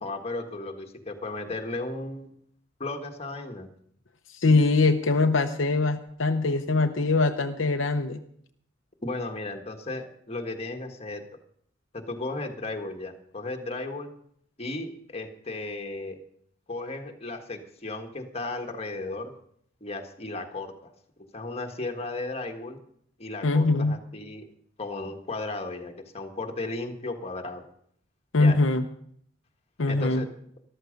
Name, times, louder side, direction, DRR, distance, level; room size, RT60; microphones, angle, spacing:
voice 1, 0.0-2.3 2.8-3.7 9.0-11.2 11.9-14.1 14.6-16.2 16.7-19.3 19.8-20.9 21.3-22.8 23.2-24.4 24.8-27.6 28.3-28.6 29.9-30.3, left 2 dB, 30° left, 4 dB, 1.6 m, -35 dB
voice 2, 4.4-8.2 23.4-23.9 28.3-28.8 29.8-30.2, left 3 dB, 70° left, 5 dB, 0.8 m, -22 dB
14.0 x 12.5 x 5.2 m, 0.66 s
head